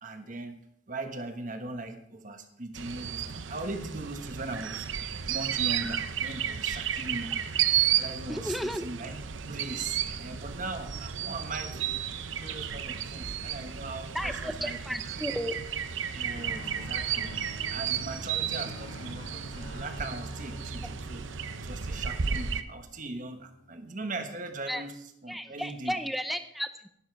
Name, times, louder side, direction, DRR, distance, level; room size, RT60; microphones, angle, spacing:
voice 1, 0.0-0.6 0.9-4.9 5.3-7.3 8.0-9.2 9.4-12.0 12.4-14.8 15.0-15.2 16.1-17.3 17.7-26.0, right 2 dB, 40° right, 6 dB, 1.3 m, -39 dB
sound 1, 2.7-22.6, right 9 dB, 70° right, 0.7 m, -33 dB
voice 2, 8.3-8.8 14.1-15.6 20.8-20.9 24.7-24.8 25.3-26.9, equal, ahead, 9 dB, 0.6 m, -33 dB
Guitar, 16.3-24.0, equal, 45° left, 1.9 m, -47 dB
11.5 x 11.5 x 4.7 m, 0.73 s
head